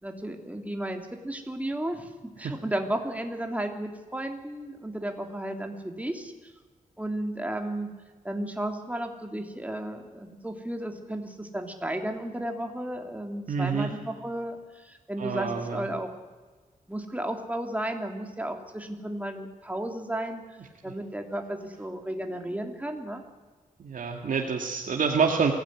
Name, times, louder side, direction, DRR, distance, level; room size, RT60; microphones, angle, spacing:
voice 1, 0.0-6.5 7.0-7.9 8.2-16.1 16.9-20.4 20.8-23.2, right 1 dB, 10° right, 4 dB, 3.2 m, -33 dB
voice 2, 13.5-13.9 15.2-15.9 23.8-25.5, right 5 dB, 85° right, 1 dB, 2.2 m, -27 dB
23.5 x 17.0 x 9.6 m, 1.4 s
wide cardioid pair, 90°, 14 cm